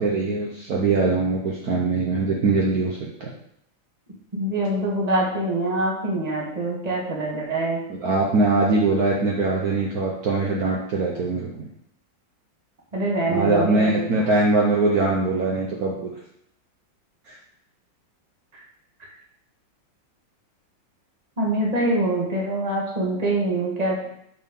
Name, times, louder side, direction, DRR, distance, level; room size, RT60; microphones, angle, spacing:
voice 1, 0.0-3.3 8.0-11.7 13.3-16.1, right 3 dB, 55° right, -3 dB, 1.3 m, -22 dB
voice 2, 4.3-7.8 12.9-14.3 21.4-24.1, right 1 dB, 20° right, -3 dB, 1.5 m, -24 dB
5.5 x 4.3 x 5.3 m, 0.70 s
omnidirectional pair, 2.1 m